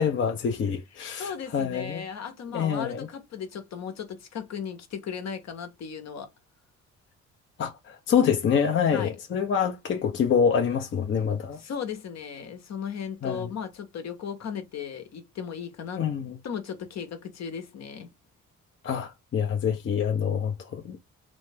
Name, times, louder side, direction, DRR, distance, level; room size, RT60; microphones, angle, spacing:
voice 1, 0.0-2.0 2.5-3.1 7.6-11.6 13.2-13.5 16.0-16.3 18.8-21.0, left 7 dB, 40° left, 0.6 m, -26 dB
voice 2, 1.2-6.3 8.9-9.2 11.6-16.0 16.4-18.1, left 7 dB, 60° left, 1.0 m, -36 dB
3.0 x 2.2 x 3.4 m
cardioid pair, 90°, 30 cm